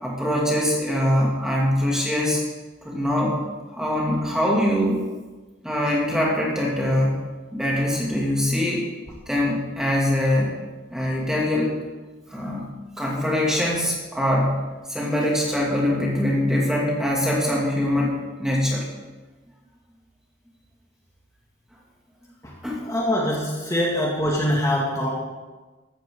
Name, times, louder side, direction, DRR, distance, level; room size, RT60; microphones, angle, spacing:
voice 1, 0.0-2.4 2.8-3.4 3.7-5.1 5.6-7.3 7.5-8.9 9.3-10.5 10.9-11.8 12.3-12.7 13.0-14.6 14.9-18.8 22.6-22.9, left 1 dB, 5° right, -4 dB, 2.4 m, -23 dB
voice 2, 22.8-25.1, equal, 15° left, -3 dB, 2.2 m, -23 dB
15.5 x 13.5 x 3.9 m, 1.3 s
head